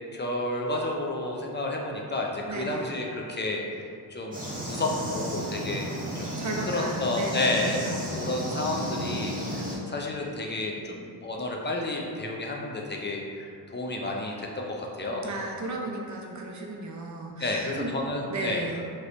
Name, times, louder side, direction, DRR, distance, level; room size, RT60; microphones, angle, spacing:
voice 1, 0.1-15.3 17.4-18.8, left 2 dB, 25° left, -1 dB, 0.4 m, -31 dB
voice 2, 2.5-2.9 6.4-7.6 10.7-11.1 15.2-17.9 18.3-18.8, right 2 dB, 40° right, 0 dB, 0.6 m, -35 dB
sound 1, 4.3-9.8, equal, 20° right, 0.9 m, -33 dB
3.0 x 2.9 x 2.6 m, 2.3 s
cardioid pair, 60°, 43 cm